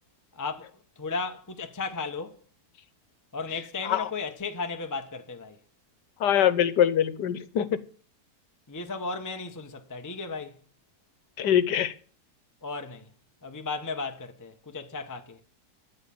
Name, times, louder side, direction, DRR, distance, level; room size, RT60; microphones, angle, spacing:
voice 1, 0.3-2.4 3.3-5.6 8.7-10.6 12.6-13.1 13.4-15.4, left 4 dB, 15° left, 0.9 m, -35 dB
voice 2, 6.2-7.7 11.4-11.9, left 10 dB, 90° left, 1.6 m, -23 dB
13.0 x 8.1 x 7.1 m
omnidirectional pair, 1.8 m